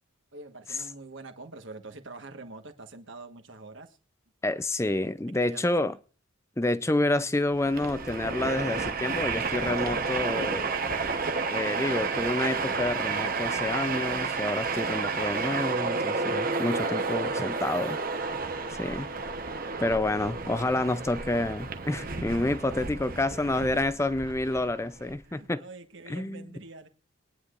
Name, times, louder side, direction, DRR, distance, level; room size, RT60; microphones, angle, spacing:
voice 1, 0.3-4.0 5.3-6.0 22.6-24.6 25.2-26.9, right 3 dB, 60° right, 1.4 m, -46 dB
voice 2, 4.4-5.9 6.6-10.7 11.5-18.0 18.8-19.1 19.8-25.6 26.1-26.5, left 2 dB, 15° left, 0.5 m, -29 dB
Train, 7.5-25.1, right 4 dB, 40° right, 1.0 m, -31 dB
22.0 x 9.9 x 2.5 m
head